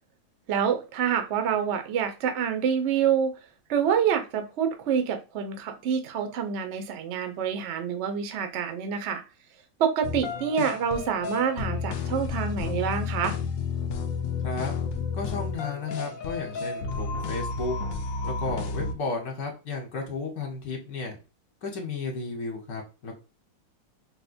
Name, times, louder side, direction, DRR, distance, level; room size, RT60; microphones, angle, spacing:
voice 1, 0.5-3.3 3.7-9.2 9.8-13.4, right 7 dB, 85° right, 6 dB, 0.6 m, -27 dB
sound 1, 10.0-18.9, left 5 dB, 85° left, 0.7 m, -31 dB
voice 2, 14.4-14.7 15.1-17.8 18.2-21.2 21.6-23.1, left 3 dB, 60° left, 1 dB, 1.3 m, -33 dB
4.6 x 2.1 x 2.5 m, 0.32 s
omnidirectional pair, 2.1 m